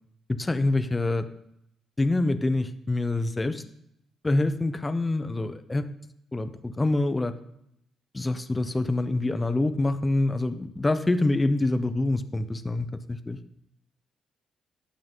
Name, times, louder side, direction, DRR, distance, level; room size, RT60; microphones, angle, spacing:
voice 1, 0.3-1.3 2.0-3.6 4.2-5.9 6.3-7.3 8.1-13.4, left 2 dB, 20° left, 11 dB, 0.8 m, -26 dB
12.5 x 8.6 x 3.8 m, 0.75 s
cardioid pair, 90°, 0 cm